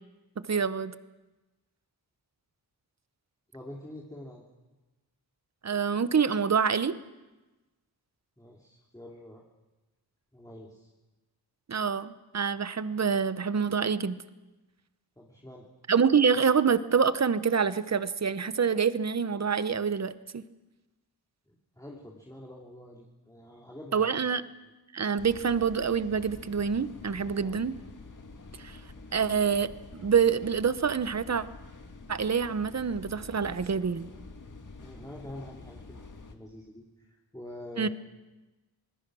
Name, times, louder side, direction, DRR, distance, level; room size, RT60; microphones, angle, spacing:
voice 1, 0.5-0.9 5.6-6.9 11.7-14.2 15.9-20.4 23.9-24.4 24.9-27.7 28.6-28.8 29.1-31.4 32.1-34.1 37.8-37.9, right 6 dB, 40° right, 14 dB, 0.9 m, -26 dB
voice 2, 3.5-4.4 8.4-9.4 10.3-10.9 15.2-15.7 21.5-24.1 24.6-24.7 27.2-27.6 34.8-36.0 36.3-37.9, left 1 dB, 10° left, -2 dB, 2.9 m, -46 dB
sound 1, 25.2-36.3, left 3 dB, 50° left, 2.0 m, -47 dB
25.5 x 20.5 x 6.3 m, 1.1 s
wide cardioid pair, 95°, 40 cm